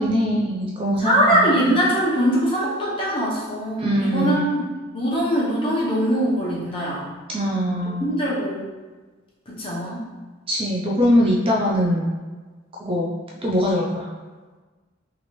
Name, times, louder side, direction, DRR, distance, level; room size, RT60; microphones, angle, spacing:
voice 1, 0.0-1.8 3.8-4.5 7.3-8.0 10.5-12.1 12.8-13.2 13.4-14.1, equal, 25° right, -3 dB, 0.4 m, -22 dB
voice 2, 1.0-4.6 4.9-7.1 8.0-8.6 9.5-10.0, equal, 25° left, -6 dB, 0.8 m, -22 dB
3.0 x 2.5 x 3.0 m, 1.3 s
head